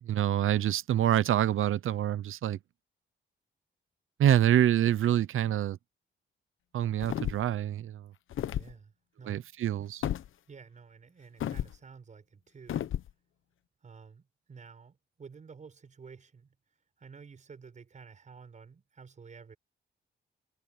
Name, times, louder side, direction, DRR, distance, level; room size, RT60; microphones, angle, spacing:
voice 1, 0.0-2.6 4.2-5.8 6.7-8.1 9.3-10.1, right 11 dB, 90° right, 0.8 m, -26 dB
sound 1, 7.0-7.6 8.3-8.7 10.0-10.3 11.4-11.8 12.7-13.1, left 11 dB, 80° left, 0.9 m, -32 dB
voice 2, 8.5-9.5 10.5-12.9 13.8-16.6 17.0-19.6, right 5 dB, 35° right, 6.0 m, -51 dB
wide cardioid pair, 180°, 20 cm